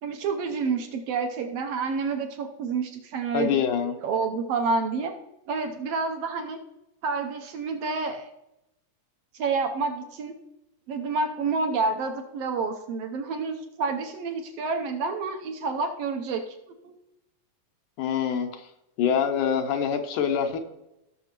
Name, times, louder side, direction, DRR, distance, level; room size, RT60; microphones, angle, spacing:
voice 1, 0.0-3.6 4.0-5.1 5.5-6.6 7.0-8.3 9.3-10.3 10.9-16.4 16.8-16.9, right 4 dB, 70° right, 5 dB, 1.6 m, -29 dB
voice 2, 3.3-3.9 18.0-18.7 19.0-20.6, left 8 dB, 85° left, 5 dB, 2.5 m, -25 dB
17.5 x 6.7 x 3.0 m, 0.89 s
omnidirectional pair, 3.5 m